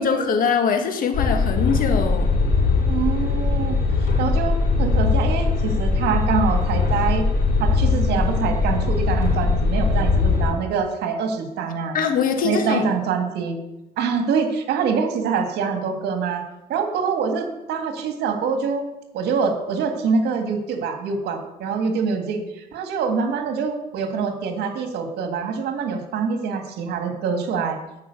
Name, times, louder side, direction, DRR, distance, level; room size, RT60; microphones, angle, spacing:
voice 1, 0.0-2.3 11.9-12.9, left 6 dB, 55° left, 5 dB, 1.7 m, -22 dB
sound 1, 1.1-10.5, left 4 dB, 75° left, 5.0 m, -20 dB
voice 2, 2.9-3.8 4.2-7.3 7.6-12.0 12.4-13.6 14.0-18.8 19.1-27.8, right 5 dB, 75° right, 5 dB, 1.9 m, -25 dB
9.4 x 6.0 x 8.2 m, 0.94 s
cardioid pair, 110°, 17 cm